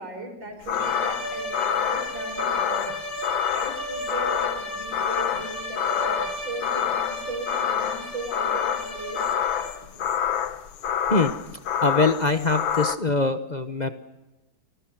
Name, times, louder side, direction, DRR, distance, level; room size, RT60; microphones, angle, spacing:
voice 1, 0.0-9.2, right 2 dB, 60° right, 6 dB, 5.9 m, -38 dB
sound 1, 0.7-13.0, left 9 dB, 70° left, 1.8 m, -27 dB
sound 2, 0.7-9.9, equal, 5° left, 4.6 m, -34 dB
voice 2, 11.8-13.9, left 3 dB, 35° left, 8 dB, 0.7 m, -23 dB
29.5 x 20.0 x 6.1 m, 1.0 s
omnidirectional pair, 2.3 m